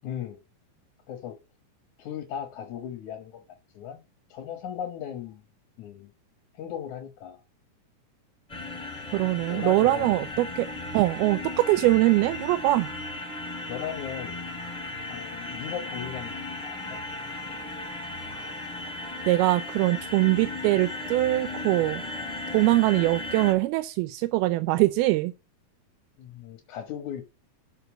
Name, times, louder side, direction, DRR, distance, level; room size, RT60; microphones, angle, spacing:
voice 1, 0.0-0.4 1.1-1.4 2.0-3.4 3.7-4.0 4.3-5.4 5.8-6.1 6.5-7.4 9.5-10.2 13.7-14.4 15.1-17.0 26.2-27.2, left 9 dB, 65° left, 2.3 m, -37 dB
sound 1, 8.5-23.5, left 2 dB, 10° left, 3.0 m, -36 dB
voice 2, 9.1-10.7 10.9-12.9 18.3-18.5 19.3-22.0 22.5-25.3, right 18 dB, 90° right, 2.5 m, -23 dB
6.8 x 5.4 x 6.2 m
omnidirectional pair, 4.3 m